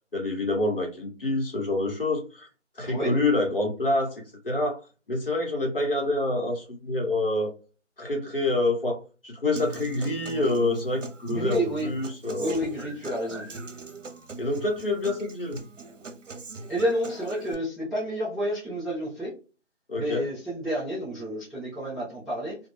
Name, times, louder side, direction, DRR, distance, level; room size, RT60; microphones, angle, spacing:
voice 1, 0.1-2.5 2.8-4.8 5.1-7.5 8.0-12.6 14.4-15.6 19.9-20.3, left 2 dB, 50° left, 1 dB, 1.0 m, -27 dB
voice 2, 2.8-3.2 11.3-11.9 12.4-13.4 16.7-19.3 20.0-22.6, equal, ahead, -10 dB, 0.5 m, -30 dB
Human voice / Acoustic guitar, 9.5-17.5, right 3 dB, 80° right, 0.7 m, -40 dB
2.3 x 2.2 x 3.3 m, 0.33 s
figure-of-eight pair, 170°, 37 cm